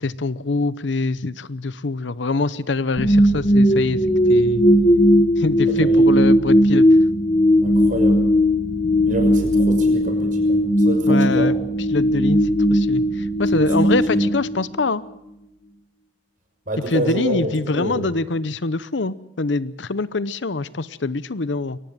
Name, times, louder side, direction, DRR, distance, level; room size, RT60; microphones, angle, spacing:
voice 1, 0.0-4.0 4.3-4.6 5.4-6.9 11.1-11.5 11.9-12.4 12.7-13.0 13.4-15.0 16.9-21.8, left 3 dB, 80° left, 16 dB, 0.8 m, -24 dB
sound 1, 3.0-15.1, equal, 35° left, 1.4 m, -17 dB
voice 2, 5.6-6.2 7.6-8.3 9.1-11.5 13.5-13.6 14.2-14.3 16.7-18.2, right 1 dB, 45° right, 5 dB, 6.1 m, -28 dB
22.5 x 18.0 x 7.5 m, 0.86 s
head